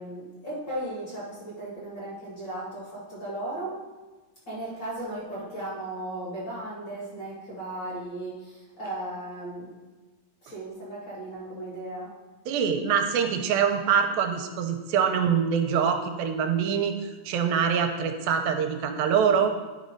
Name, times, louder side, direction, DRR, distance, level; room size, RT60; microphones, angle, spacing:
voice 1, 0.0-3.8 4.5-9.7 10.4-12.1, right 1 dB, 35° left, -7 dB, 2.1 m, -36 dB
voice 2, 12.5-19.5, right 7 dB, 85° right, 5 dB, 2.4 m, -24 dB
11.0 x 4.2 x 5.2 m, 1.2 s
omnidirectional pair, 4.2 m